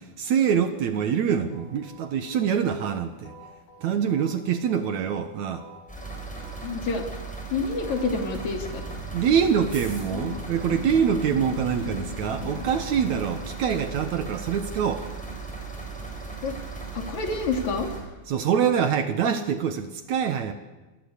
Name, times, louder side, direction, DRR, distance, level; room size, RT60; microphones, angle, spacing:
voice 1, 0.0-3.3 3.8-5.7 9.1-15.1 18.3-20.5, right 7 dB, 65° right, 8 dB, 1.9 m, -25 dB
sound 1, 1.5-2.9 3.2-5.2 5.5-7.5 7.8-9.8 10.1-12.9, left 6 dB, 85° left, 5.8 m, -44 dB
sound 2, 5.9-18.0, right 4 dB, ahead, 7.0 m, -37 dB
voice 2, 6.6-7.0 7.5-8.8 16.4-16.6 16.9-17.9, left 4 dB, 45° left, 3 dB, 4.0 m, -28 dB
sound 3, 8.3-13.4, left 3 dB, 70° left, 5.3 m, -42 dB
28.5 x 22.0 x 8.3 m, 1.2 s
omnidirectional pair, 4.8 m